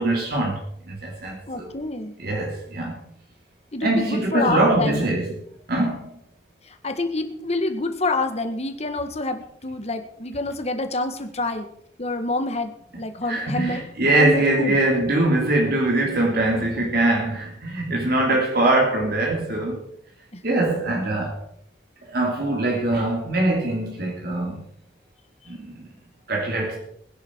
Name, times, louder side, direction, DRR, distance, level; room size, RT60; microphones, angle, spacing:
voice 1, 0.0-1.7 2.2-3.0 3.8-5.4 5.7-6.1 13.3-19.9 20.4-21.4 22.1-24.6 25.5-25.9 26.3-26.8, right 2 dB, 60° right, 3.1 m, -22 dB
voice 2, 1.5-2.2 3.7-5.2 6.7-11.7 12.0-12.7 13.0-13.9 14.2-14.8 16.5-17.0 18.3-18.4 20.5-20.7, left 2 dB, 35° left, 1.7 m, -27 dB
21.0 x 10.5 x 4.7 m
head